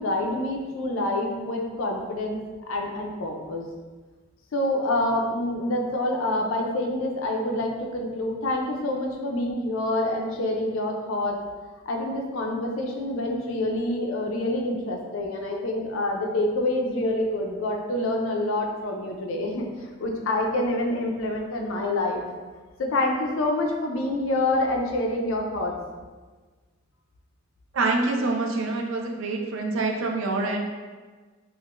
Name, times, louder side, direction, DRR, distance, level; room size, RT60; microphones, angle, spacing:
voice 1, 0.0-2.4 2.7-3.6 4.5-11.4 11.9-22.2 22.8-25.7, left 1 dB, 75° left, 1 dB, 0.5 m, -27 dB
voice 2, 27.7-30.6, right 3 dB, 70° right, 1 dB, 0.4 m, -26 dB
3.5 x 2.5 x 2.5 m, 1.4 s
head